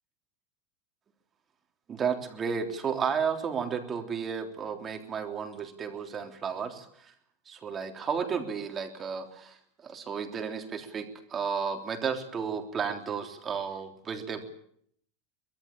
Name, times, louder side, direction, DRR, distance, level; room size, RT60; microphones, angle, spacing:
voice 1, 1.9-7.1 7.5-9.6 9.8-14.4, right 6 dB, 20° right, 6 dB, 3.5 m, -33 dB
24.5 x 20.5 x 8.7 m, 0.66 s
supercardioid pair, 145°, 0 cm